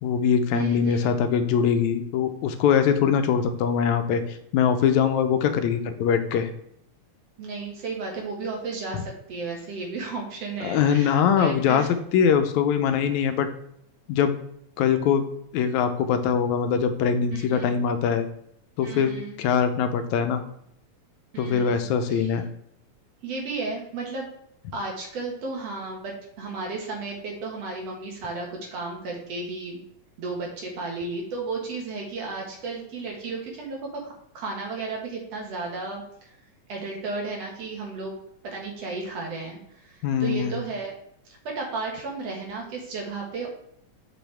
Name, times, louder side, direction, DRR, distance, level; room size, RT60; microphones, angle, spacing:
voice 1, 0.0-6.5 10.6-11.9 12.1-13.5 14.1-14.3 14.8-15.2 15.5-18.3 18.8-20.4 21.4-22.4 40.0-40.6, left 7 dB, 90° left, 8 dB, 2.0 m, -22 dB
voice 2, 0.5-1.2 7.4-11.9 17.3-17.7 18.8-19.4 21.3-22.3 23.2-24.3 24.7-29.8 30.2-36.3 36.7-38.1 38.4-40.9 41.4-43.5, right 3 dB, 60° right, -1 dB, 2.5 m, -34 dB
6.1 x 6.1 x 3.4 m, 0.73 s
omnidirectional pair, 3.3 m